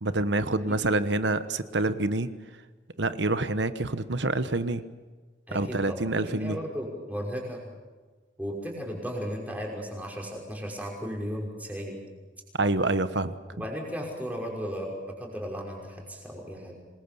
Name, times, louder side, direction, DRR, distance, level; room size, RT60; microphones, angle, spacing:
voice 1, 0.0-2.3 3.0-4.8 5.5-6.6 12.6-13.4, right 2 dB, 70° right, 12 dB, 1.2 m, -27 dB
voice 2, 5.5-7.6 8.4-12.0 13.5-16.8, equal, 10° right, -1 dB, 5.8 m, -35 dB
27.0 x 21.0 x 7.1 m, 1.3 s
head